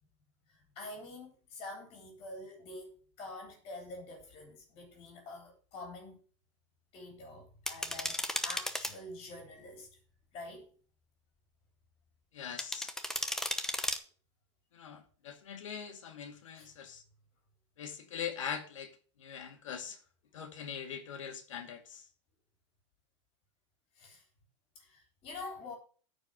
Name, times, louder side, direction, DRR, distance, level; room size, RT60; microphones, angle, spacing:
voice 1, 0.5-6.2 6.9-9.9 10.3-10.7 16.5-16.7 23.9-24.2 24.7-25.7, left 2 dB, 35° left, 3.3 m, -47 dB
sound 1, 7.7-8.9 12.6-14.0, left 1 dB, 5° left, 0.9 m, -35 dB
voice 2, 12.3-12.9 14.7-17.0 17.8-18.9 19.2-20.0 20.3-22.0, left 7 dB, 90° left, 2.2 m, -42 dB
9.2 x 5.2 x 7.4 m
supercardioid pair, 140°, 16 cm